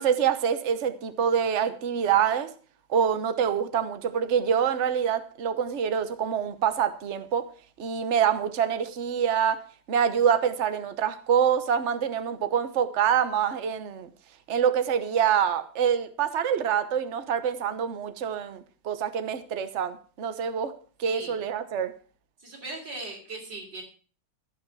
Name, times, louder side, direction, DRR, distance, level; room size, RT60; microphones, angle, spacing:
voice 1, 0.0-2.5 2.9-7.5 7.8-9.6 9.9-14.1 14.5-20.7 21.0-21.9, right 8 dB, 45° right, 1.2 m, -26 dB
voice 2, 21.0-21.3 22.4-23.8, right 2 dB, 75° right, 4.2 m, -39 dB
15.5 x 5.8 x 7.5 m
omnidirectional pair, 2.0 m